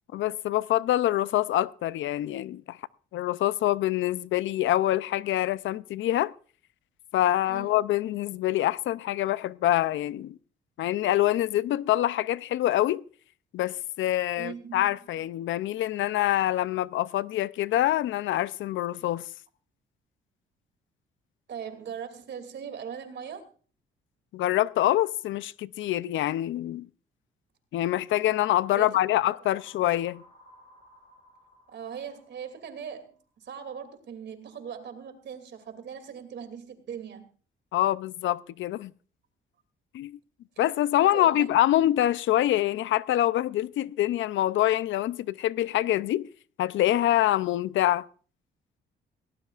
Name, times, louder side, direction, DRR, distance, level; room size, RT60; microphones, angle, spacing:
voice 1, 0.1-2.8 3.1-6.3 7.1-10.4 10.8-13.0 13.5-19.2 24.3-26.9 27.7-30.2 37.7-38.9 39.9-40.2 40.6-46.3 46.6-48.1, left 13 dB, 75° left, 0.5 m, -25 dB
voice 2, 7.5-7.8 14.4-14.9 21.5-23.5 28.7-29.2 31.7-37.3 41.0-41.5, right 7 dB, 60° right, 2.7 m, -40 dB
sound 1, 29.5-33.3, equal, 30° left, 6.5 m, -57 dB
18.0 x 17.5 x 2.5 m
cardioid pair, 90°, 20 cm